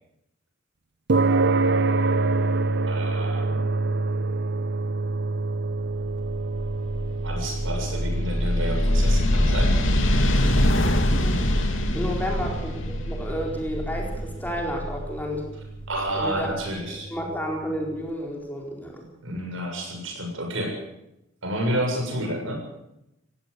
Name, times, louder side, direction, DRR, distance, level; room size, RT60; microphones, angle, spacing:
sound 1, 1.1-17.6, right 3 dB, 55° right, 0.8 m, -28 dB
voice 1, 2.9-3.7 7.2-9.7 12.2-12.5 15.9-17.1 19.2-20.8 21.4-22.6, right 1 dB, 70° right, 2 dB, 7.2 m, -30 dB
sound 2, 5.8-16.6, left 1 dB, 70° left, 3.0 m, -24 dB
voice 2, 11.1-11.4 11.9-15.5 16.1-16.5 17.1-19.1, equal, 10° left, 0 dB, 4.4 m, -31 dB
19.0 x 16.5 x 8.3 m, 0.87 s
head